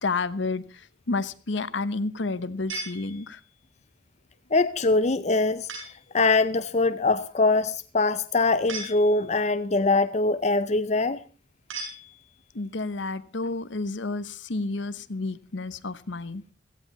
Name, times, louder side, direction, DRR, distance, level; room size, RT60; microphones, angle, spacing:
voice 1, 0.0-3.4 12.5-16.4, left 3 dB, 70° left, 1.0 m, -30 dB
sound 1, 2.7-3.6 5.7-6.2 8.7-9.5 11.7-12.6, right 2 dB, 90° right, 7.0 m, -39 dB
voice 2, 4.5-5.7 6.1-11.2, left 3 dB, 35° left, 0.6 m, -23 dB
17.0 x 14.5 x 4.0 m
head